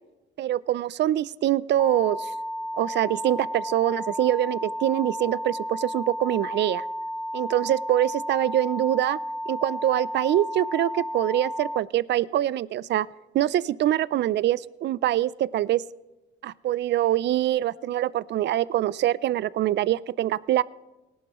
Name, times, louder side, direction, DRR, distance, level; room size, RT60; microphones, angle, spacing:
voice 1, 0.4-2.3 2.8-6.8 7.3-9.2 9.5-13.1 13.3-15.8 16.4-20.6, right 13 dB, 60° right, 20 dB, 0.4 m, -24 dB
sound 1, 1.8-11.8, equal, 5° left, 0.5 m, -33 dB
18.0 x 12.0 x 3.0 m, 1.1 s
cardioid pair, 90°, 20 cm